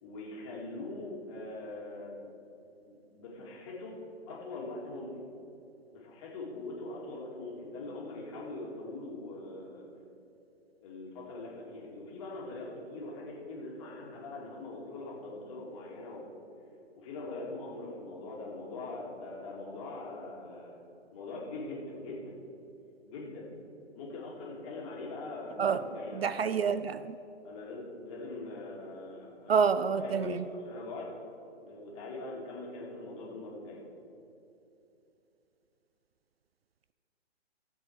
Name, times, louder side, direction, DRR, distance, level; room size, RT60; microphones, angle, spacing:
voice 1, 0.0-2.3 2.9-3.9 4.3-5.3 5.9-9.9 10.8-16.2 17.0-20.8 21.1-22.4 23.0-23.5 24.0-26.4 27.4-30.4 30.6-31.1 31.6-33.8, left 2 dB, 25° left, -3 dB, 2.3 m, -42 dB
voice 2, 26.1-27.2 29.5-30.4, right 6 dB, 60° right, 13 dB, 0.5 m, -28 dB
15.0 x 7.7 x 4.7 m, 2.8 s
figure-of-eight pair, 145°, 35 cm